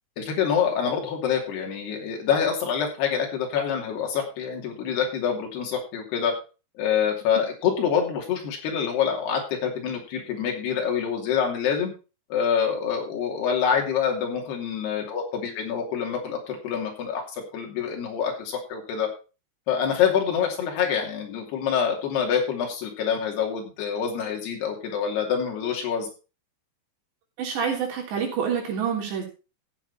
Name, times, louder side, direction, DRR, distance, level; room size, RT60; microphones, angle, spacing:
voice 1, 0.2-6.3 6.8-11.9 12.3-19.1 19.7-26.1, left 7 dB, 65° left, 1 dB, 4.7 m, -26 dB
voice 2, 27.4-29.3, right 7 dB, 70° right, 0 dB, 5.4 m, -27 dB
15.5 x 7.7 x 4.3 m, 0.33 s
omnidirectional pair, 5.3 m